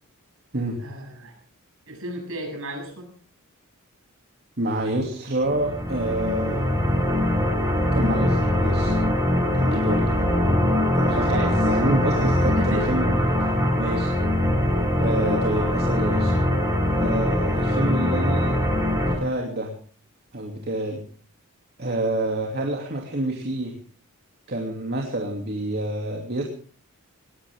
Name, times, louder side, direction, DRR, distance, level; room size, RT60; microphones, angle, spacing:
voice 1, 0.8-1.4 1.9-3.1 9.6-9.8 11.3-11.6 12.5-12.9, equal, 65° right, 2 dB, 7.6 m, -33 dB
voice 2, 4.6-6.7 7.9-8.9 9.5-10.2 10.9-13.4 13.8-14.1 15.0-16.3 16.9-19.7 20.3-21.0 21.8-23.7 24.5-26.4, right 1 dB, 50° right, 0 dB, 2.7 m, -28 dB
sound 1, 5.4-19.2, left 1 dB, 15° right, 5.3 m, -22 dB
20.5 x 17.0 x 3.6 m, 0.44 s
head